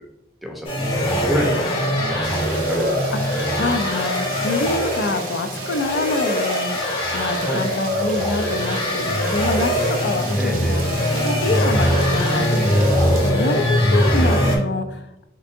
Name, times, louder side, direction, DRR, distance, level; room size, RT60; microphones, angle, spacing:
voice 1, 0.4-1.7 2.0-3.1 7.4-7.6 10.3-10.8 14.1-14.5, equal, ahead, 0 dB, 0.6 m, -28 dB
sound 1, 0.6-14.6, equal, 30° left, 0.8 m, -21 dB
Rain, 2.2-13.3, right 4 dB, 50° right, 0.6 m, -35 dB
voice 2, 3.1-6.8 7.1-15.1, left 3 dB, 70° left, 9 dB, 0.4 m, -26 dB
3.7 x 3.4 x 2.5 m, 0.89 s
head